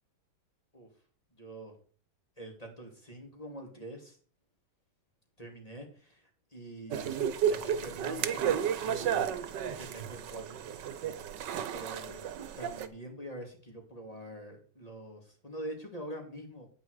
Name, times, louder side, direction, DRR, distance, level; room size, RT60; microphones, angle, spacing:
voice 1, 1.3-1.8 2.4-4.2 5.4-9.2 9.6-10.6 11.7-12.3 12.6-16.7, right 1 dB, 20° left, 2 dB, 2.7 m, -45 dB
sound 1, 6.9-12.9, right 8 dB, 90° right, 1.5 m, -32 dB
9.2 x 9.2 x 4.8 m, 0.42 s
omnidirectional pair, 1.8 m